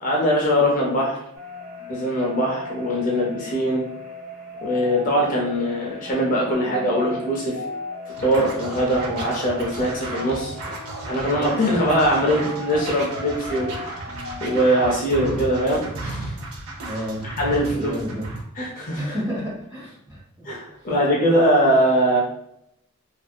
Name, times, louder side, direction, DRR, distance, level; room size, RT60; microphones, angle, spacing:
voice 1, 0.0-1.2 1.9-3.8 4.6-7.5 8.2-10.6 11.1-14.1 14.4-16.3 17.4-17.9 18.6-19.1 20.5-22.2, equal, 35° left, -3 dB, 0.5 m, -22 dB
sound 1, 1.3-14.6, left 2 dB, 40° right, 0.7 m, -37 dB
Scratching (performance technique), 8.1-18.4, right 2 dB, 85° right, 0.5 m, -34 dB
voice 2, 16.8-17.2 17.7-18.3 18.9-20.5 20.8-20.9, equal, 20° right, -7 dB, 1.2 m, -31 dB
2.6 x 2.5 x 2.2 m, 0.77 s
head